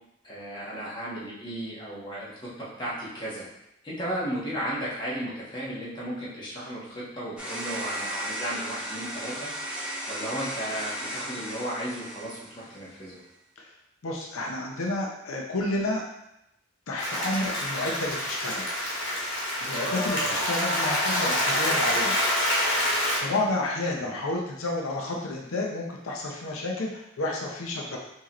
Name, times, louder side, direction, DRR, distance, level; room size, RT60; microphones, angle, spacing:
voice 1, 0.2-2.3 2.6-3.5 3.8-9.8 10.1-13.2 20.1-20.4 23.9-24.1, right 1 dB, 20° left, -7 dB, 1.2 m, -35 dB
sound 1, 7.4-12.9, equal, 5° right, 0.6 m, -35 dB
voice 2, 14.0-16.0 16.9-18.8 19.6-22.2 23.2-28.0, left 2 dB, 85° left, -1 dB, 0.6 m, -30 dB
Applause, 17.0-23.2, equal, 60° left, 1.4 m, -27 dB
4.7 x 2.9 x 3.0 m, 0.85 s
head